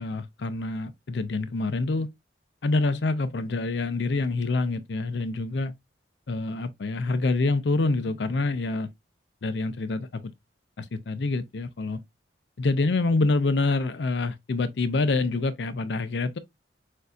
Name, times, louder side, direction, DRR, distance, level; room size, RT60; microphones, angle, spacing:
voice 1, 0.0-2.1 2.6-5.7 6.3-8.9 9.4-10.3 10.8-12.0 12.6-16.4, left 3 dB, 70° left, 0.5 m, -26 dB
6.4 x 2.7 x 2.3 m
head